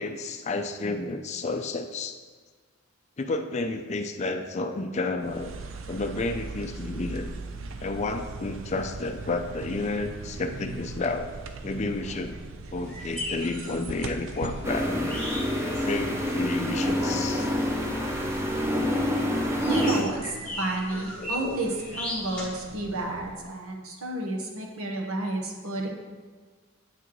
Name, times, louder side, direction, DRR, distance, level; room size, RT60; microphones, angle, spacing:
voice 1, 0.0-2.2 3.2-5.5 5.9-7.3 7.8-11.3 11.6-12.4 12.7-15.2 15.8-17.5 19.5-20.1 20.9-21.6, left 3 dB, 30° left, 7 dB, 0.4 m, -31 dB
sound 1, 5.2-23.6, right 3 dB, 70° right, 0.5 m, -41 dB
sound 2, 12.8-22.4, left 1 dB, 5° left, 1.3 m, -39 dB
sound 3, 14.6-20.0, left 1 dB, 10° right, 0.6 m, -27 dB
voice 2, 19.7-25.9, right 2 dB, 90° right, 1 dB, 1.1 m, -31 dB
8.0 x 6.0 x 3.1 m, 1.5 s
head